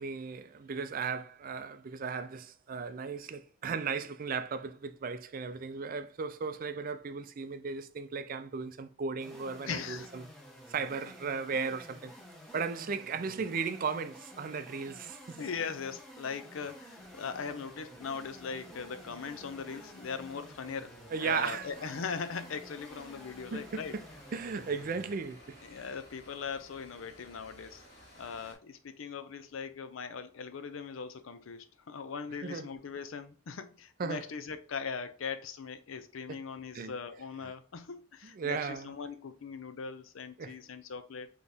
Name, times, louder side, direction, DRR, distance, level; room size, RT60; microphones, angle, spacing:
voice 1, 0.0-10.3 10.7-12.1 12.5-15.4 21.1-21.7 23.5-24.0 24.3-25.7 32.4-32.7 34.0-34.2 36.3-36.4 36.7-36.9 38.3-38.9 40.4-40.6, right 5 dB, 45° right, 0.4 m, -36 dB
sound 1, 9.2-25.2, equal, ahead, 1.0 m, -52 dB
voice 2, 9.6-10.1 15.4-24.0 25.6-27.8 28.2-41.3, left 5 dB, 85° left, 0.5 m, -40 dB
sound 2, 17.0-28.5, right 1 dB, 30° left, 1.8 m, -56 dB
4.3 x 3.0 x 3.3 m
head